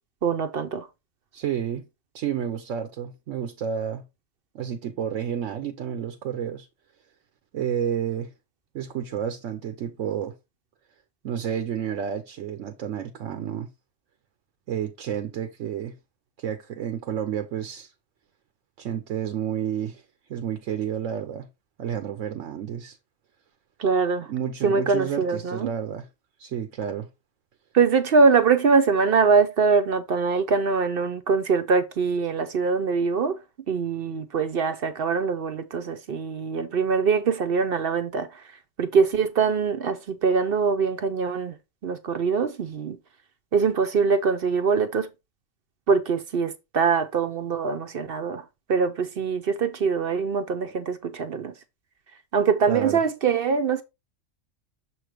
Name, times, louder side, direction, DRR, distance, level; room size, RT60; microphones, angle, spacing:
voice 1, 0.2-0.9 23.8-24.3 24.6-25.7 27.7-33.4 33.7-38.4 38.8-41.6 41.8-43.0 43.5-45.1 45.9-48.4 48.7-51.5 52.3-53.8, right 5 dB, 55° right, 0.8 m, -23 dB
voice 2, 1.3-1.9 2.1-4.0 4.5-6.7 7.5-8.3 8.7-10.3 11.2-13.7 14.7-16.0 16.4-17.9 18.8-20.0 20.3-21.5 21.8-23.0 24.3-26.1 26.4-27.1 52.7-53.0, right 9 dB, 80° right, 1.1 m, -30 dB
6.9 x 3.1 x 4.9 m
omnidirectional pair, 1.3 m